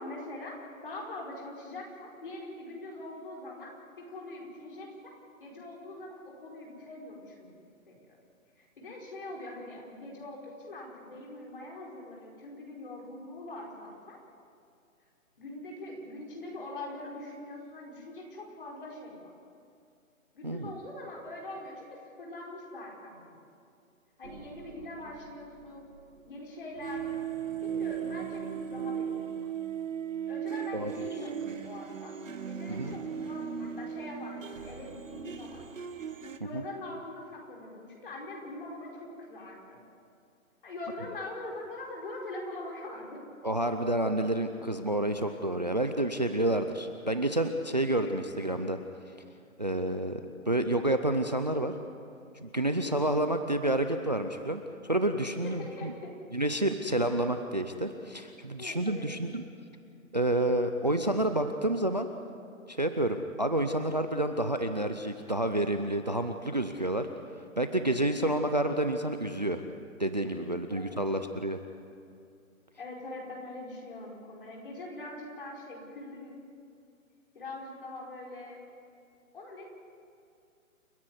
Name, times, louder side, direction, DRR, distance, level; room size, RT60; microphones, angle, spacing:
voice 1, 0.0-3.7 4.0-4.9 5.4-7.5 7.9-8.2 8.6-14.2 15.4-19.3 20.3-23.4 24.2-25.9 26.2-27.1 27.6-29.5 30.3-32.1 32.5-35.6 36.4-39.8 40.6-43.2 48.0-48.1 52.7-53.0 55.4-56.2 58.6-59.1 68.4-68.5 70.7-71.0 72.8-76.4 77.3-78.6 79.3-79.7, left 2 dB, 40° left, -2 dB, 4.9 m, -43 dB
sound 1, 24.2-26.2 26.8-36.4, right 8 dB, 65° right, 1.5 m, -37 dB
voice 2, 43.4-48.8 49.6-50.2 50.5-51.7 52.4-55.9 56.3-59.4 60.1-62.1 62.7-67.1 67.6-69.6 70.0-71.6, right 1 dB, 30° right, 8 dB, 0.6 m, -29 dB
29.5 x 10.5 x 9.7 m, 2.4 s
hypercardioid pair, 180°, 42 cm